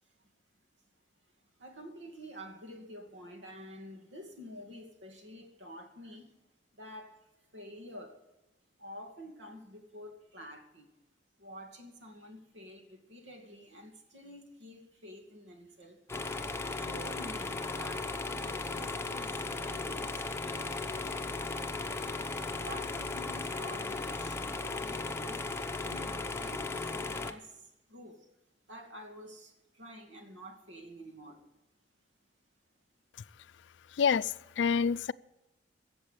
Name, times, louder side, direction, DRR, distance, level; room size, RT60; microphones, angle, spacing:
voice 1, 1.6-6.3 6.7-7.2 7.5-8.2 8.8-10.9 11.4-16.0 16.7-20.7 22.6-25.4 25.8-28.3 28.7-31.5, equal, 80° right, 2.4 m, -49 dB
sound 1, 16.1-27.3, left 3 dB, 15° left, 0.8 m, -36 dB
voice 2, 34.0-35.1, left 6 dB, 75° left, 0.4 m, -27 dB
14.5 x 7.9 x 9.0 m
head